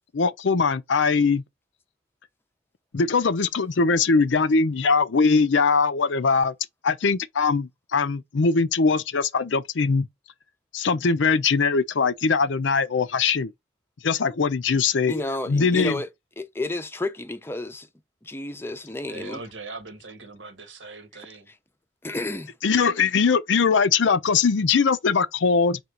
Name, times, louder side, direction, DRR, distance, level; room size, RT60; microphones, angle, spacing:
voice 1, 0.1-1.4 2.9-6.5 6.8-10.1 10.7-13.5 14.0-15.2 15.5-15.9 22.6-25.8, left 5 dB, 85° left, 0.6 m, -21 dB
voice 2, 15.1-16.1 16.4-17.9 18.2-19.4 21.5-21.6 22.0-22.5, left 2 dB, 15° left, 0.5 m, -31 dB
voice 3, 19.1-21.5, right 3 dB, 85° right, 1.1 m, -40 dB
4.4 x 2.4 x 3.7 m
head